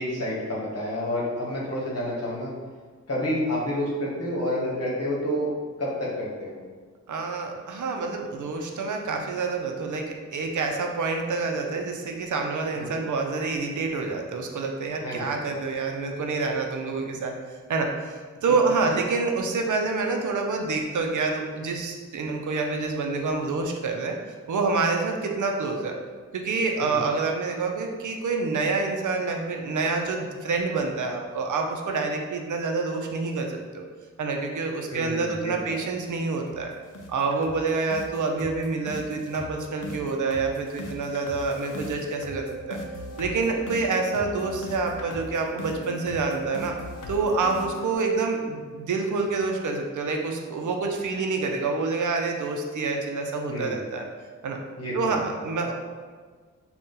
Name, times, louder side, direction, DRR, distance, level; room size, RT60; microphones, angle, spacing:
voice 1, 0.0-2.5 3.1-5.5 5.8-6.6 12.7-12.9 15.0-15.3 26.8-27.0 34.9-35.8 53.5-53.8 54.8-55.2, left 1 dB, 50° left, -5 dB, 1.1 m, -29 dB
voice 2, 7.1-17.4 17.7-24.2 24.5-26.0 26.3-33.8 34.2-36.7 37.1-42.8 43.2-46.7 47.1-54.1 54.4-54.6 54.9-55.7, right 4 dB, 70° right, 2 dB, 0.5 m, -27 dB
sound 1, 35.5-35.6 36.0-36.1 36.5-36.6 36.9-47.9, left 1 dB, 80° left, 0.6 m, -39 dB
4.0 x 2.3 x 3.7 m, 1.5 s
wide cardioid pair, 125°, 31 cm